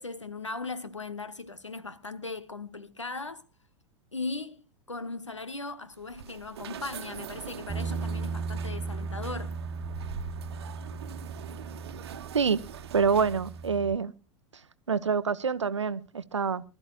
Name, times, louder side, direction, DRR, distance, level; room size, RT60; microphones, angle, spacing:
voice 1, 0.0-3.4 4.1-4.6 4.9-9.6, left 3 dB, 85° left, 1.2 m, -38 dB
sound 1, 5.9-13.8, right 7 dB, 60° right, 1.2 m, -43 dB
Bass guitar, 7.7-13.9, right 4 dB, 20° right, 0.8 m, -37 dB
voice 2, 12.9-14.1 14.9-16.6, right 6 dB, 75° right, 0.8 m, -26 dB
24.0 x 13.0 x 2.3 m
figure-of-eight pair, 90°, 15 cm